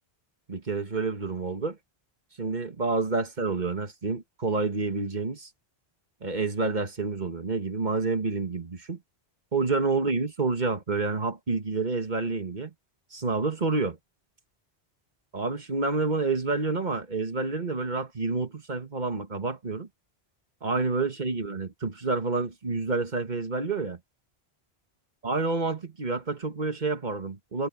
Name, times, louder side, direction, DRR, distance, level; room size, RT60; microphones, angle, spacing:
voice 1, 0.5-1.8 2.4-5.5 6.2-9.0 9.5-12.7 13.1-14.0 15.3-19.9 20.6-24.0 25.2-27.7, right 3 dB, 45° right, 1.7 m, -28 dB
omnidirectional pair, 1.1 m